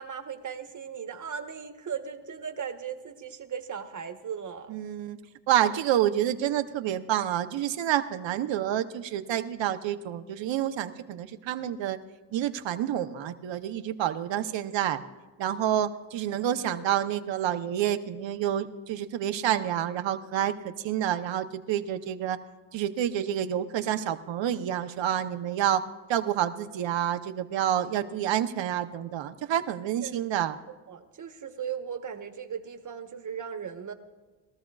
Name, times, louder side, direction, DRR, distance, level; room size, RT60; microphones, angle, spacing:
voice 1, 0.0-4.8 30.0-30.3 30.9-33.9, right 7 dB, 40° right, 6 dB, 1.1 m, -37 dB
voice 2, 4.7-5.2 5.5-12.0 12.3-15.0 15.4-22.4 22.7-25.8 26.1-30.6, right 11 dB, 75° right, 9 dB, 0.8 m, -28 dB
21.5 x 14.0 x 2.4 m, 1.3 s
cardioid pair, 120°, 45 cm